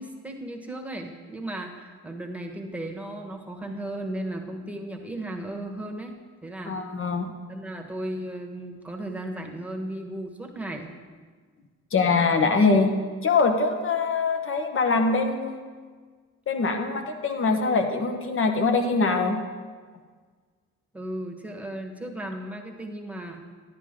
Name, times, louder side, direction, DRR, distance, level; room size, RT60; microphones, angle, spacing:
voice 1, 0.0-6.1 6.4-6.8 7.5-10.9 20.9-23.4, right 1 dB, 5° right, 2 dB, 1.3 m, -35 dB
voice 2, 6.7-7.3 11.9-13.0 13.2-15.6 16.5-19.4, left 4 dB, 45° left, 6 dB, 1.2 m, -23 dB
10.5 x 10.5 x 3.7 m, 1.5 s
cardioid pair, 90°, 30 cm